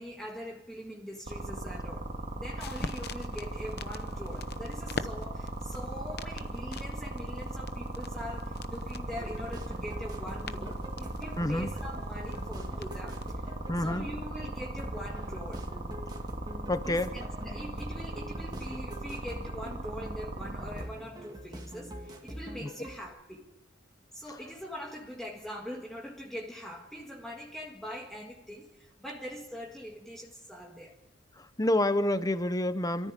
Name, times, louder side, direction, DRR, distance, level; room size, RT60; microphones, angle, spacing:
voice 1, 0.0-2.1 2.4-15.7 16.9-23.5 24.1-31.0, equal, ahead, -2 dB, 1.8 m, -43 dB
sound 1, 1.3-20.8, right 1 dB, 40° right, 2.0 m, -38 dB
sound 2, 2.1-13.3, left 4 dB, 55° left, 0.9 m, -45 dB
sound 3, 9.0-23.0, equal, 20° right, 2.4 m, -44 dB
voice 2, 11.4-11.7 13.7-14.0 16.7-17.1 31.6-33.1, left 1 dB, 20° left, 12 dB, 1.0 m, -28 dB
27.0 x 14.0 x 7.5 m, 0.93 s
head